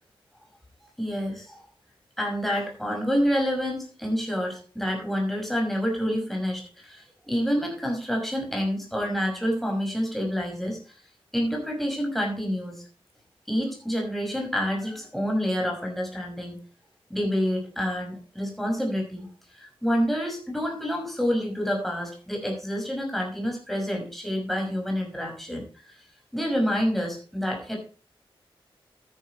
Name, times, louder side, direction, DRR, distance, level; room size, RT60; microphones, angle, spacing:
voice 1, 1.0-1.6 2.2-10.8 11.3-12.8 13.5-16.6 17.1-19.3 19.5-25.6 26.3-27.8, equal, ahead, 0 dB, 5.7 m, -28 dB
13.0 x 11.0 x 3.1 m, 0.38 s
wide cardioid pair, 120°, 10 cm